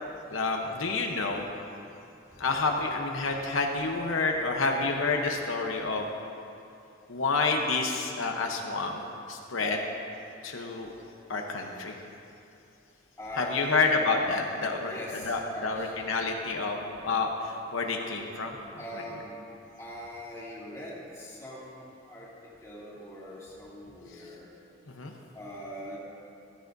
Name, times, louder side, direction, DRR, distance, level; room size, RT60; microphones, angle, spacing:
voice 1, 0.3-1.5 2.4-6.1 7.1-9.8 10.4-10.9 11.3-11.9 13.4-15.0 15.2-18.6 24.9-25.1, left 3 dB, 85° left, 2 dB, 0.9 m, -29 dB
voice 2, 13.2-14.0 14.9-15.9 18.8-19.4 19.8-22.3 22.6-24.5 25.3-26.0, equal, 15° left, -7 dB, 2.3 m, -41 dB
14.5 x 13.5 x 2.6 m, 2.7 s
head